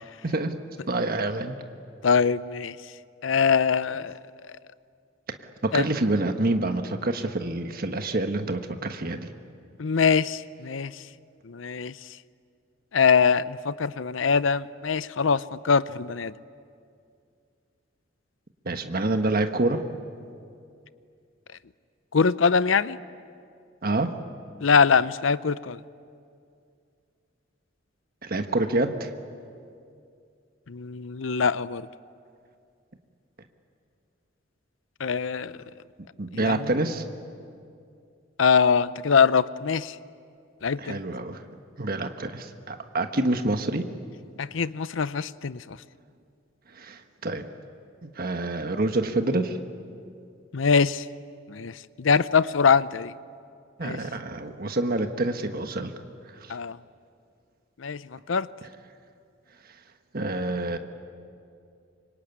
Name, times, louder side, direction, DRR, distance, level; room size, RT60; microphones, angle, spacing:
voice 1, 0.2-0.5 0.9-1.5 5.3-5.4 5.6-9.3 18.6-19.8 23.8-24.1 28.2-29.1 36.2-37.0 40.8-41.4 41.8-43.9 46.7-47.4 48.0-49.6 53.8-55.9 56.3-56.5 60.1-60.8, right 2 dB, 50° right, 6 dB, 1.4 m, -27 dB
voice 2, 2.0-2.8 3.2-4.1 5.7-5.8 9.8-11.0 11.4-11.9 12.9-16.3 22.1-23.0 24.6-25.8 30.7-31.9 35.0-35.5 36.3-36.7 38.4-40.0 40.6-41.0 44.4-45.8 50.5-51.1 51.5-53.1 53.8-54.0 56.5-56.8 57.8-58.5, left 5 dB, 85° left, 16 dB, 0.6 m, -23 dB
25.5 x 23.5 x 9.5 m, 2.4 s
head